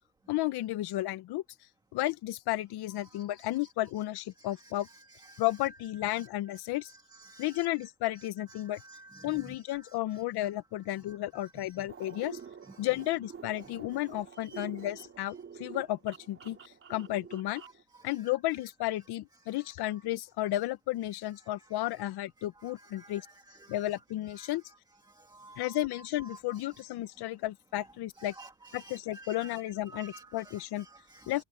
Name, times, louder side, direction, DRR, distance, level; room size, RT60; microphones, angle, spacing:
voice 1, 0.3-1.4 1.9-4.9 5.4-6.9 7.4-8.8 9.2-12.4 12.8-17.6 18.0-23.2 23.7-24.6 25.6-28.3 28.7-30.8 31.3-31.4, left 16 dB, 55° left, 1.4 m, -33 dB
voice 2, 7.2-7.5 8.8-9.4 14.5-14.7 23.0-23.2 23.5-23.7 24.4-24.5 25.3-25.8 28.2-29.5 29.9-31.3, right 3 dB, 10° right, 1.7 m, -51 dB
sound 1, 11.9-17.8, right 7 dB, 25° right, 3.6 m, -48 dB
cardioid pair, 140°, 46 cm